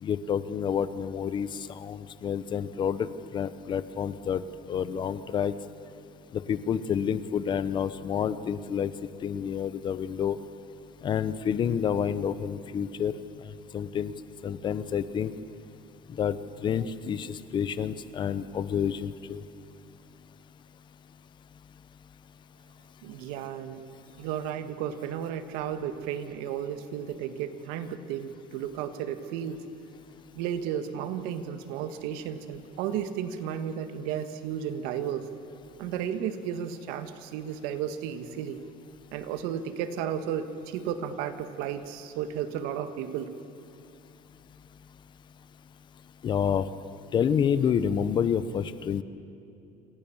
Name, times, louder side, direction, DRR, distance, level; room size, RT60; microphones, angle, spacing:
voice 1, 0.0-3.1 3.3-4.4 4.7-5.5 6.3-8.9 9.2-10.4 11.0-13.1 13.5-14.1 14.4-15.3 16.1-16.4 16.6-19.4 46.2-46.7 47.1-49.0, left 8 dB, 30° left, 14 dB, 0.9 m, -28 dB
voice 2, 23.0-23.8 24.2-29.6 30.4-35.3 35.8-38.6 39.1-43.3, right 9 dB, 85° right, 9 dB, 1.8 m, -33 dB
28.0 x 25.5 x 7.3 m, 2.7 s
cardioid pair, 165°, 15 cm